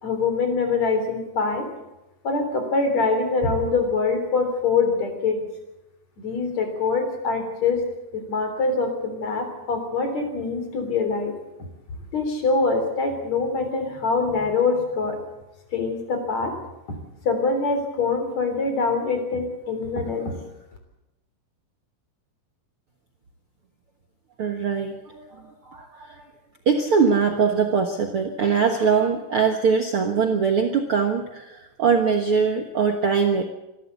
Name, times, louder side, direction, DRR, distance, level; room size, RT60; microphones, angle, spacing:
voice 1, 0.0-1.7 2.2-5.4 6.2-7.8 8.1-11.4 12.1-15.2 15.7-16.5 16.9-17.0 17.2-20.3, left 4 dB, 50° left, 5 dB, 4.7 m, -24 dB
voice 2, 24.4-26.2 26.6-33.4, right 6 dB, 55° right, 3 dB, 1.7 m, -22 dB
27.0 x 12.5 x 8.3 m, 0.97 s
omnidirectional pair, 4.2 m